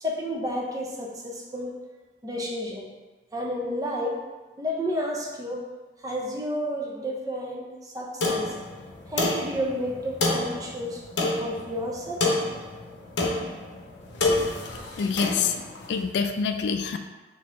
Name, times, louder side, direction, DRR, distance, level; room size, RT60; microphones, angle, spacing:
voice 1, 0.0-1.8 2.2-2.9 3.3-4.2 4.6-5.6 6.0-8.7 9.1-11.0 11.4-12.2, equal, 20° right, -2 dB, 0.6 m, -31 dB
sound 1, 8.2-16.0, left 2 dB, 90° left, 0.7 m, -29 dB
voice 2, 14.8-15.6 15.9-17.0, left 6 dB, 75° left, 7 dB, 0.3 m, -26 dB
4.1 x 2.8 x 3.6 m, 1.2 s
head